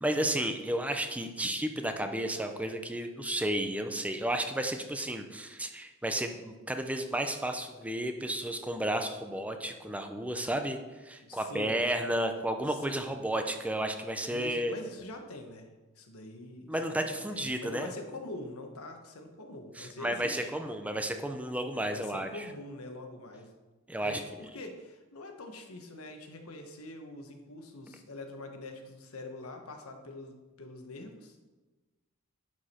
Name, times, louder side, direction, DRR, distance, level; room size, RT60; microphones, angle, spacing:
voice 1, 0.0-10.8 11.0-14.7 16.7-17.9 19.8-22.5 23.9-24.2, right 1 dB, 5° right, 6 dB, 0.5 m, -32 dB
voice 2, 11.2-11.8 12.7-13.1 14.3-15.7 16.0-20.5 21.8-23.5 24.0-31.4, left 2 dB, 90° left, 4 dB, 1.2 m, -44 dB
11.0 x 4.9 x 4.3 m, 1.2 s
head